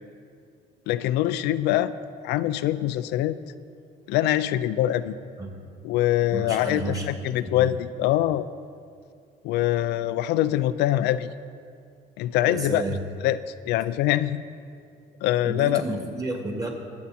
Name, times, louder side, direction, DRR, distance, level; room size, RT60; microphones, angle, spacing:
voice 1, 0.9-1.9 2.2-3.4 4.1-5.1 5.8-8.5 9.4-11.3 12.2-13.0 13.2-13.4 13.7-14.4 15.2-15.8, left 13 dB, 85° left, 13 dB, 0.5 m, -24 dB
voice 2, 6.3-7.1 7.4-7.7 12.5-13.0 15.4-16.7, right 2 dB, 20° right, 2 dB, 2.3 m, -31 dB
20.5 x 8.3 x 4.3 m, 2.3 s
cardioid pair, 110°, 17 cm